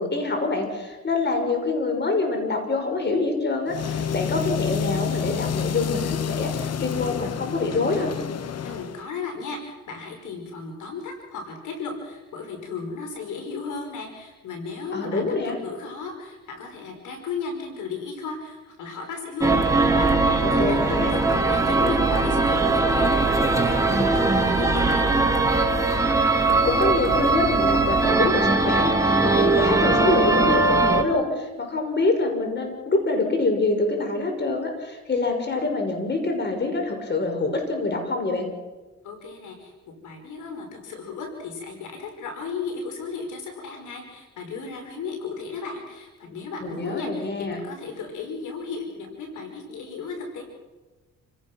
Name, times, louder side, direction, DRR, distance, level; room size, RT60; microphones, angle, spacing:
voice 1, 0.0-8.2 14.9-15.6 20.4-21.2 26.4-38.5 46.6-47.6, left 3 dB, 35° left, 4 dB, 5.8 m, -26 dB
sound 1, 3.7-9.0, left 8 dB, 55° left, 1.3 m, -29 dB
voice 2, 8.6-15.3 15.6-25.1 39.0-50.4, left 4 dB, 80° left, 3 dB, 5.3 m, -35 dB
sound 2, 19.4-31.0, right 3 dB, 10° right, 2.5 m, -20 dB
29.5 x 17.0 x 6.2 m, 1.2 s
cardioid pair, 90°, 30 cm